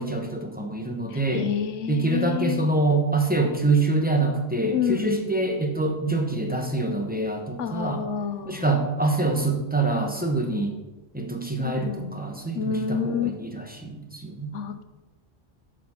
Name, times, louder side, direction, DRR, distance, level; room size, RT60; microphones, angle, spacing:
voice 1, 0.0-1.5 1.9-8.0 8.5-10.8 11.1-14.5, right 2 dB, 10° right, 2 dB, 1.0 m, -25 dB
voice 2, 1.1-2.7 4.7-5.1 7.6-8.7 11.6-12.2 12.5-13.6 14.5-14.8, left 7 dB, 75° left, 10 dB, 1.1 m, -29 dB
9.2 x 5.1 x 5.7 m, 1.1 s
omnidirectional pair, 1.3 m